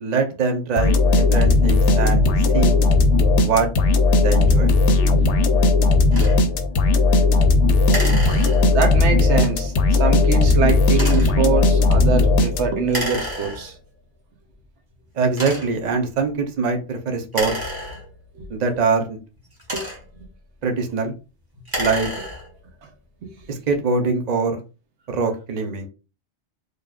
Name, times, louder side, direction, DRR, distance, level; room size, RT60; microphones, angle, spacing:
voice 1, 0.0-2.2 2.5-2.8 3.4-3.7 4.1-4.7 15.2-17.5 18.5-19.2 20.6-21.1 21.8-22.1 23.5-24.6 25.1-25.9, right 4 dB, 45° right, 0.8 m, -23 dB
sound 1, 0.8-12.9, left 3 dB, 90° left, 1.0 m, -17 dB
sound 2, 6.1-6.4 7.9-8.9 10.9-11.4 12.9-13.9 14.6-14.7 15.3-15.9 17.3-18.4 19.4-20.3 21.5-22.6, equal, 20° right, 1.3 m, -30 dB
voice 2, 8.7-13.7 19.7-19.8, right 5 dB, 85° right, 1.1 m, -24 dB
4.8 x 3.2 x 2.4 m
omnidirectional pair, 1.2 m